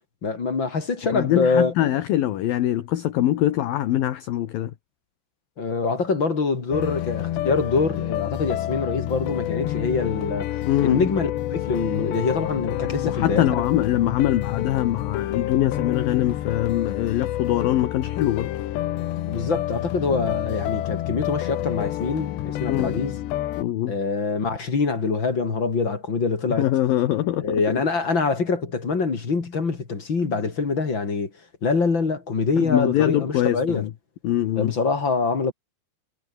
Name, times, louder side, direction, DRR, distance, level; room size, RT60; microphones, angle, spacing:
voice 1, 0.2-1.7 5.6-10.5 10.8-13.6 19.3-23.2 23.9-26.7 27.4-31.3 31.6-33.9 34.6-35.5, left 4 dB, 30° left, 3.0 m, -24 dB
voice 2, 1.1-4.7 10.7-11.1 13.0-18.5 22.7-23.0 23.6-23.9 26.6-27.6 32.6-33.9 34.2-34.7, left 13 dB, 65° left, 2.9 m, -23 dB
sound 1, 6.7-23.6, left 13 dB, 90° left, 3.7 m, -28 dB
omnidirectional pair, 4.8 m